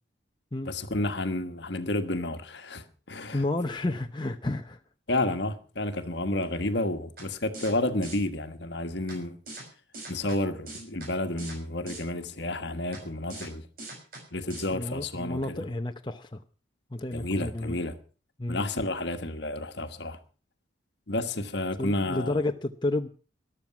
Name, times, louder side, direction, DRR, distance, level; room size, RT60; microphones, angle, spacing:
voice 1, 0.6-3.4 5.1-9.4 10.1-13.6 14.3-15.6 17.1-18.0 18.5-20.2 21.1-22.4, left 2 dB, 60° left, 1.5 m, -31 dB
voice 2, 3.3-4.8 14.7-16.4 16.9-17.8 18.4-18.6 21.8-23.1, left 2 dB, 25° left, 0.6 m, -31 dB
sound 1, 7.2-7.3 7.5-7.7 8.0-8.2 9.1-9.2 9.5-9.6 9.9-10.4 10.7-11.1 11.4-11.6 11.9-12.0 12.9-13.0 13.3-13.5 13.8-14.2 14.5-14.6, right 2 dB, 50° right, 5.6 m, -41 dB
13.5 x 12.0 x 5.9 m
head